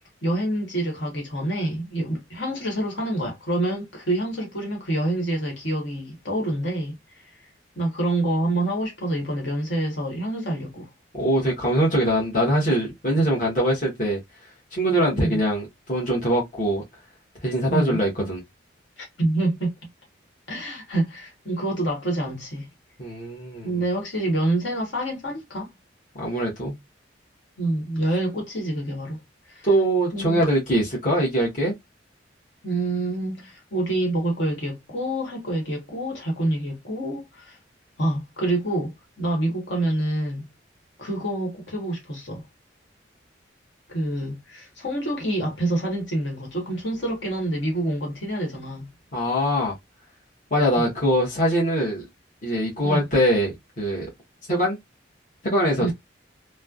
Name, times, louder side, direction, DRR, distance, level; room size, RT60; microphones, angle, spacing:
voice 1, 0.2-6.9 7.7-10.9 15.1-15.4 17.7-18.0 19.0-19.7 20.5-22.7 23.6-25.7 27.6-29.2 29.5-29.7 30.1-30.4 32.6-37.6 38.0-40.5 41.0-42.4 43.9-48.9 50.7-50.8 52.8-53.1 55.8-55.9, right 1 dB, 70° left, 1.4 m, -27 dB
voice 2, 11.1-14.2 14.7-16.8 17.4-18.4 23.0-23.7 26.1-26.8 29.6-31.7 49.1-49.7 50.5-52.0 52.4-53.5 53.8-54.1 54.5-54.8 55.4-55.9, equal, 45° left, 1.1 m, -22 dB
3.1 x 2.1 x 2.4 m
head